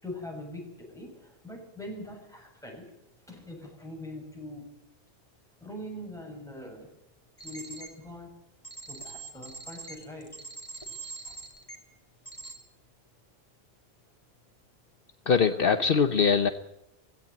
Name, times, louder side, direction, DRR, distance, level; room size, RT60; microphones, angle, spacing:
voice 1, 0.0-2.8 3.3-4.6 5.6-6.9 7.4-8.3 8.9-10.4 11.3-11.4, left 1 dB, 5° left, 0 dB, 7.0 m, -42 dB
sound 1, 7.4-7.9 8.6-11.8 12.3-12.5, right 3 dB, 35° left, 3.3 m, -42 dB
voice 2, 15.3-16.5, left 6 dB, 65° left, 10 dB, 1.1 m, -22 dB
17.0 x 16.5 x 9.5 m, 0.85 s
omnidirectional pair, 1.0 m